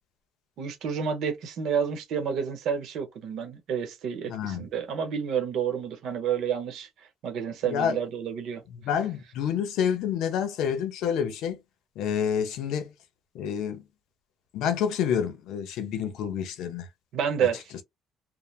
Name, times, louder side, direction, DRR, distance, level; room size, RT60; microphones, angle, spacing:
voice 1, 0.6-6.9 7.2-8.6 17.1-17.6, right 7 dB, 60° right, 0.9 m, -29 dB
voice 2, 4.3-4.6 7.6-8.0 8.7-11.6 12.0-12.9 13.3-13.8 14.5-16.9, left 8 dB, 70° left, 0.7 m, -28 dB
3.2 x 2.0 x 2.3 m
cardioid pair, 165°, 0 cm